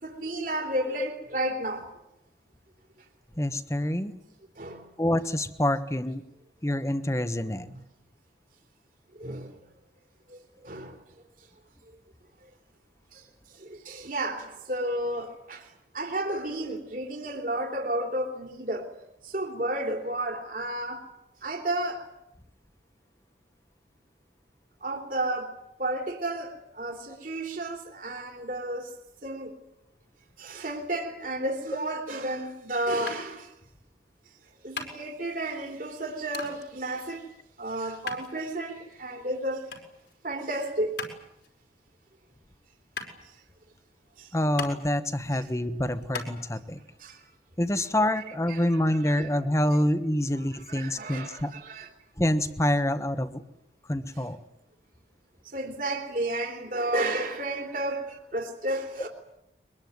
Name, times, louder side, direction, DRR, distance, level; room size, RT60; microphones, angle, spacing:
voice 1, 0.0-1.9 4.6-4.9 7.7-7.8 9.2-9.5 10.6-10.9 13.1-13.2 13.6-15.7 15.9-18.9 19.2-21.0 21.4-22.0 24.8-28.9 29.2-29.5 30.4-33.5 34.6-37.3 37.6-39.7 40.2-41.0 44.2-44.3 45.3-45.5 47.0-47.2 48.5-49.3 50.3-51.9 55.5-59.1, right 1 dB, 50° right, 3.2 m, -32 dB
voice 2, 3.4-4.1 5.0-6.2 6.6-7.7 44.3-46.8 47.6-51.5 52.2-53.4 53.9-54.4, left 1 dB, 15° left, 1.2 m, -26 dB
sound 1, 33.1-46.3, left 4 dB, 75° left, 5.1 m, -42 dB
23.0 x 22.0 x 9.6 m
head